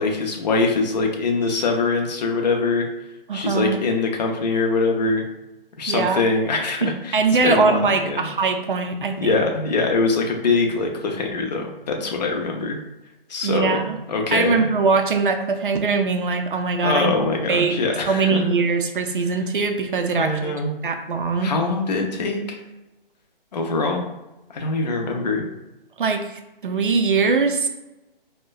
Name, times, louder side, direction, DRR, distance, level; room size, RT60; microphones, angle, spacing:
voice 1, 0.0-2.9 3.3-5.3 5.8-7.2 7.4-8.3 9.2-12.8 13.3-14.7 16.8-18.4 20.1-20.8 21.4-22.6 23.5-24.1 24.5-25.5, left 3 dB, 45° left, 2 dB, 0.5 m, -23 dB
voice 2, 3.3-3.8 5.9-6.2 6.8-9.4 13.4-14.0 14.3-17.2 17.5-17.8 18.0-20.5 20.8-21.5 26.0-26.2 26.6-27.7, right 4 dB, 60° right, 5 dB, 0.5 m, -21 dB
4.3 x 2.1 x 2.3 m, 0.98 s
figure-of-eight pair, 140°, 29 cm